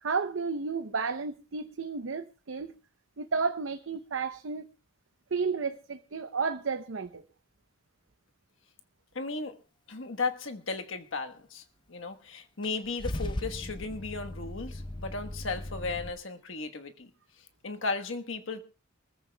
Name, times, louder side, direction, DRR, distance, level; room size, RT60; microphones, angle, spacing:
voice 1, 0.0-2.7 3.2-4.7 5.3-7.2, right 5 dB, 75° right, 0.7 m, -32 dB
voice 2, 9.1-9.6 9.9-17.1 17.4-18.6, left 3 dB, 75° left, 1.3 m, -35 dB
Car / Engine starting / Idling, 12.6-16.1, left 1 dB, 25° left, 0.6 m, -38 dB
27.0 x 14.5 x 2.3 m
head